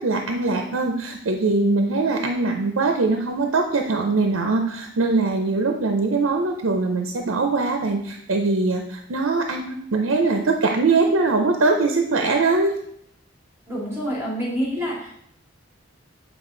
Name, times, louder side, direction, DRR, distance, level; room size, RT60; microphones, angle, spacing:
voice 1, 0.0-12.7, right 3 dB, 80° right, 4 dB, 0.6 m, -22 dB
voice 2, 13.7-15.2, equal, 15° right, -5 dB, 2.7 m, -27 dB
7.9 x 4.8 x 3.8 m, 0.74 s
head